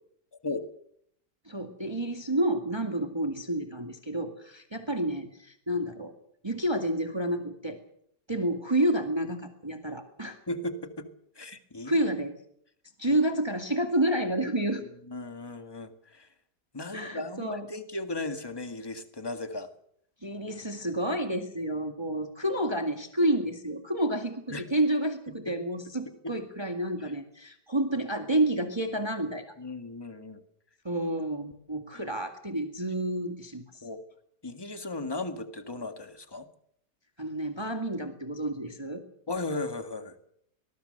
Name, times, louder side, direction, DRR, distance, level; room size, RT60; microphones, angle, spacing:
voice 1, 1.5-6.1 6.4-7.8 8.3-10.4 11.8-12.3 13.0-14.8 16.9-17.7 20.2-29.5 30.8-33.6 37.2-39.0, right 1 dB, 15° right, 5 dB, 2.0 m, -29 dB
voice 2, 10.5-11.1 11.3-12.0 13.1-13.2 15.1-16.3 16.7-19.7 24.5-24.7 25.3-25.5 26.2-26.3 29.6-30.4 31.9-32.1 33.8-34.0 34.4-36.5 39.3-40.2, left 2 dB, 15° left, 8 dB, 1.7 m, -36 dB
24.0 x 20.5 x 6.7 m, 0.69 s
omnidirectional pair, 1.8 m